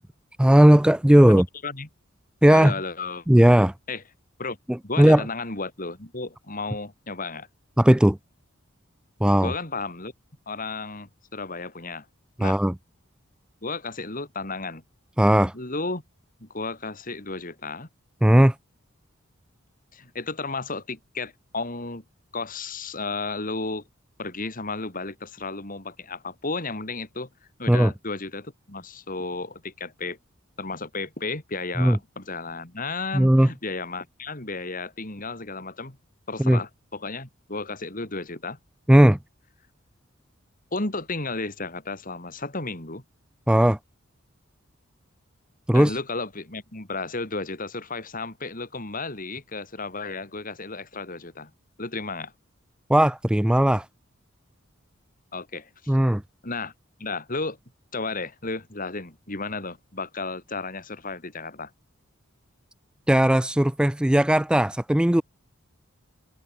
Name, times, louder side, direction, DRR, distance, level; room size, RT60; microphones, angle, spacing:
voice 1, 0.4-1.5 2.4-2.7 3.3-3.7 4.7-5.2 7.8-8.2 9.2-9.5 12.4-12.7 15.2-15.5 18.2-18.6 27.7-27.9 31.8-32.0 33.1-33.5 36.4-36.6 38.9-39.2 43.5-43.8 45.7-46.0 52.9-53.9 55.9-56.2 63.1-65.2, right 1 dB, 5° right, 0.4 m, -17 dB
voice 2, 1.3-1.9 2.5-3.3 3.9-4.0 4.4-4.6 4.8-7.5 9.4-10.1 10.5-12.1 12.4-12.6 13.6-14.8 15.5-16.0 16.4-17.9 19.9-22.0 22.3-23.8 24.2-27.3 27.6-30.2 30.6-36.0 36.3-38.6 40.7-43.0 45.7-51.5 51.8-52.3 55.3-55.9 56.4-56.7 57.0-57.6 57.9-61.7, left 3 dB, 40° left, 3.5 m, -33 dB
head